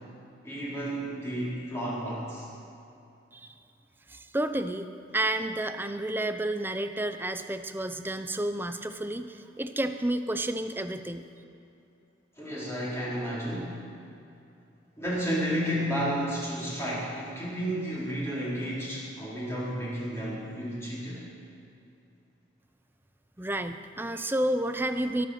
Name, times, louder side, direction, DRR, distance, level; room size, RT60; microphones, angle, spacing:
voice 1, 0.4-2.5 12.4-13.8 15.0-21.2, equal, 15° left, -8 dB, 4.1 m, -32 dB
voice 2, 4.1-4.9 5.1-11.3 23.4-25.3, right 1 dB, 10° right, 8 dB, 0.6 m, -30 dB
22.0 x 7.9 x 6.5 m, 2.7 s
head